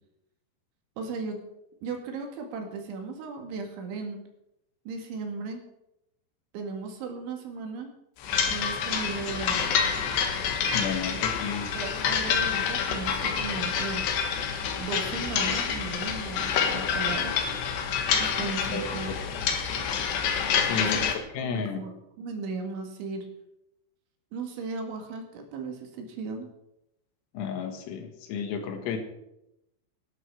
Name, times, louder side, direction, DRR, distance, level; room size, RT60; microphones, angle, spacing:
voice 1, 1.0-1.4 1.8-4.2 4.9-5.6 6.5-7.9 8.5-9.8 11.7-14.0 14.8-17.4 18.2-19.1 20.7-21.1 21.4-23.3 24.3-26.5, right 4 dB, 70° right, 3 dB, 4.3 m, -36 dB
sound 1, 8.2-21.1, left 7 dB, 65° left, 3.2 m, -27 dB
voice 2, 10.7-11.7 18.7-19.2 20.6-21.0 21.3-21.8 27.3-29.0, left 6 dB, 85° left, 5 dB, 4.4 m, -32 dB
18.5 x 12.0 x 4.8 m, 0.87 s
omnidirectional pair, 5.9 m